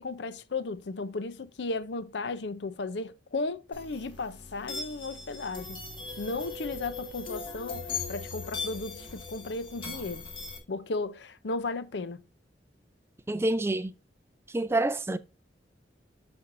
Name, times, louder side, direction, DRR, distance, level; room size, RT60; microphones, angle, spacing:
voice 1, 0.0-5.8 6.2-10.2 10.7-12.2, left 3 dB, 70° left, 0.6 m, -35 dB
sound 1, 3.7-10.6, left 4 dB, 30° left, 1.8 m, -39 dB
voice 2, 13.3-13.9 14.5-15.2, right 2 dB, 15° right, 0.4 m, -27 dB
12.5 x 4.4 x 2.6 m
head